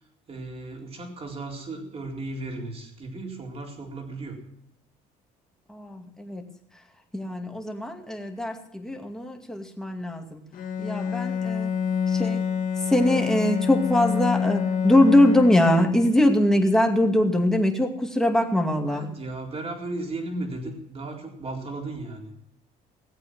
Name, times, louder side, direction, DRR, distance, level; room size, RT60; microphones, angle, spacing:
voice 1, 0.3-4.4 18.8-22.3, right 2 dB, 35° right, 1 dB, 4.1 m, -35 dB
voice 2, 5.7-6.4 7.1-10.4 10.8-11.7 12.1-12.4 12.9-19.1, left 1 dB, 5° left, 2 dB, 2.4 m, -22 dB
Bowed string instrument, 10.5-16.3, left 7 dB, 55° left, 2.4 m, -27 dB
18.5 x 8.4 x 6.2 m, 0.78 s
cardioid pair, 110°, 17 cm